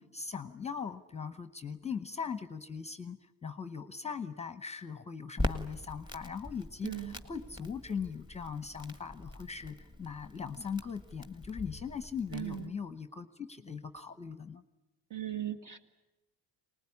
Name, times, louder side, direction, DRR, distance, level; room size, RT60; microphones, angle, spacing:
voice 1, 0.0-14.6, left 6 dB, 15° left, 11 dB, 0.8 m, -40 dB
Crackle, 5.4-12.7, left 1 dB, 10° right, 1.6 m, -42 dB
voice 2, 6.8-7.2 12.3-12.7 15.1-15.8, right 12 dB, 45° right, 6 dB, 2.1 m, -38 dB
24.5 x 19.5 x 9.7 m, 1.0 s
cardioid pair, 130°, 40 cm